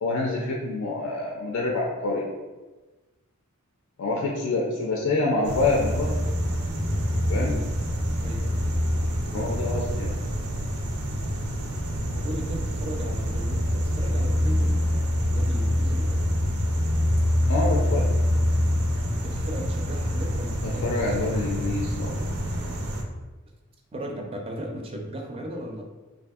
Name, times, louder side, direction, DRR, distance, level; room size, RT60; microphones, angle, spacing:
voice 1, 0.0-2.3 4.0-6.1 7.3-7.6 9.3-10.1 17.5-18.0 20.8-22.2, left 3 dB, 70° left, -2 dB, 0.4 m, -26 dB
sound 1, 5.4-23.0, equal, 80° right, 0.5 m, -26 dB
voice 2, 7.4-7.7 8.2-8.4 12.2-14.9 15.3-16.2 19.1-21.8 23.9-24.1 24.5-25.8, equal, 25° right, 1 dB, 0.4 m, -37 dB
3.4 x 2.5 x 2.3 m, 1.2 s
head